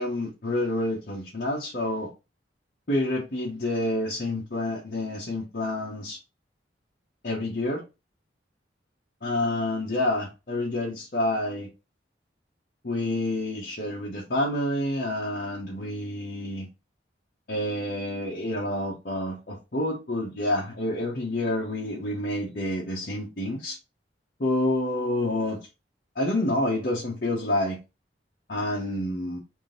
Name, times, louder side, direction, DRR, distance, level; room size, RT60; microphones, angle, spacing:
voice 1, 0.0-2.1 2.9-6.2 7.2-7.8 9.2-11.7 12.8-16.7 17.5-23.8 24.4-25.7 26.1-27.8 28.5-29.4, left 1 dB, 55° left, 0.9 m, -28 dB
3.6 x 2.7 x 3.8 m
head